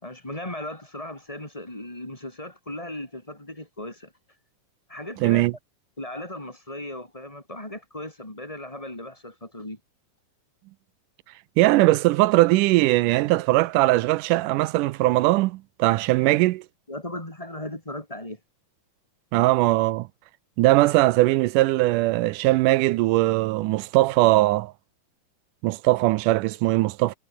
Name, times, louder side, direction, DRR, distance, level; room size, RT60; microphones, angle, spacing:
voice 1, 0.0-4.1 4.9-5.5 6.0-9.8 16.9-18.4, left 1 dB, 10° left, 3.6 m, -37 dB
voice 2, 5.2-5.5 11.6-16.6 19.3-20.1 20.6-24.7 25.6-27.1, right 18 dB, 80° right, 2.1 m, -20 dB
omnidirectional pair, 3.8 m